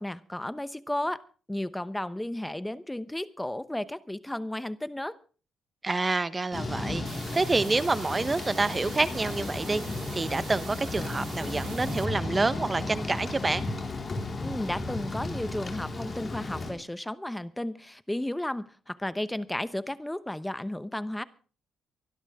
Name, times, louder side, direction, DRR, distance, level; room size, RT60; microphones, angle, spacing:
voice 1, 0.0-5.1 14.4-21.2, left 1 dB, 5° left, 15 dB, 0.9 m, -33 dB
voice 2, 5.8-9.8 10.1-13.7, right 3 dB, 25° right, 15 dB, 1.0 m, -28 dB
Thunder / Rain, 6.5-16.7, left 2 dB, 35° left, 4.4 m, -34 dB
sound 1, 7.1-12.1, right 11 dB, 80° right, 1.3 m, -46 dB
23.5 x 12.0 x 3.6 m, 0.39 s
cardioid pair, 90°, 0 cm